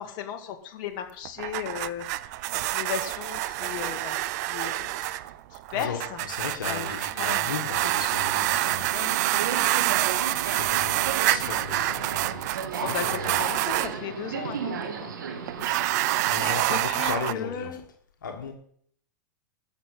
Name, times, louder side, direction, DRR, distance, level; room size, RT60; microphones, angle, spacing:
voice 1, 0.0-4.2 4.5-5.1 5.5-6.2 6.6-7.9 8.9-9.7 12.8-15.1 15.6-15.8 16.3-16.4 16.7-17.8, left 9 dB, 50° left, 6 dB, 1.9 m, -36 dB
sound 1, 1.3-13.9 15.5-17.3, right 17 dB, 60° right, 0.6 m, -27 dB
voice 2, 4.9-5.3 5.7-8.9 10.1-12.4 12.7-13.5 16.3-17.8 18.2-18.5, left 6 dB, 85° left, 3 dB, 1.6 m, -36 dB
Subway metro underground, 7.7-16.6, right 6 dB, 80° right, 2.1 m, -35 dB
13.0 x 6.3 x 8.2 m, 0.63 s
hypercardioid pair, 105°, 10 cm